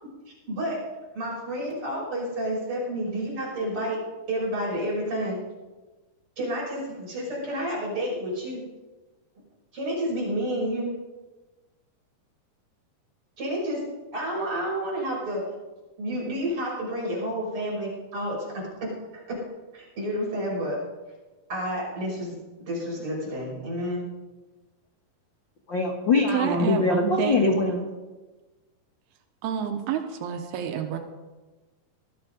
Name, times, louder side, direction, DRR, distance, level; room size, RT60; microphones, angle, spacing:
voice 1, 0.5-0.8 1.1-4.0 4.3-5.4 6.4-8.6 9.7-10.9 13.4-13.9 14.1-15.5 16.0-19.4 19.7-20.8 21.5-24.1, equal, 35° right, -4 dB, 7.0 m, -30 dB
voice 2, 25.7-27.9, left 3 dB, 75° left, 2 dB, 1.0 m, -23 dB
voice 3, 26.3-27.5 29.4-31.0, right 8 dB, 85° right, 5 dB, 3.1 m, -28 dB
18.5 x 13.0 x 5.2 m, 1.2 s
omnidirectional pair, 4.5 m